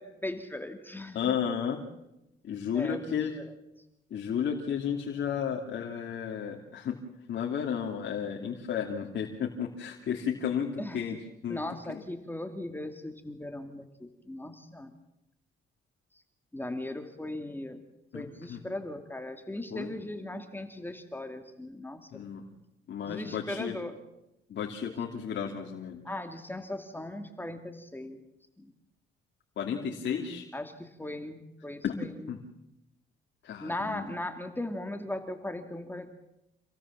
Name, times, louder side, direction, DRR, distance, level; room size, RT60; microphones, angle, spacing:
voice 1, 0.0-1.4 2.7-3.0 10.8-11.0 11.5-14.9 16.5-17.8 18.1-22.2 23.1-24.0 26.0-28.2 28.6-28.7 30.5-32.1 33.6-36.1, left 1 dB, 10° left, 6 dB, 2.5 m, -38 dB
voice 2, 1.1-1.8 2.4-3.4 4.1-7.0 7.3-11.6 11.9-12.0 18.1-18.6 19.7-19.9 22.1-22.4 22.9-23.8 24.5-26.0 29.6-30.5 31.8-31.9 32.3-32.4 33.4-34.1, left 8 dB, 65° left, 1 dB, 2.8 m, -33 dB
27.5 x 17.5 x 7.4 m, 0.90 s
cardioid pair, 90°, 20 cm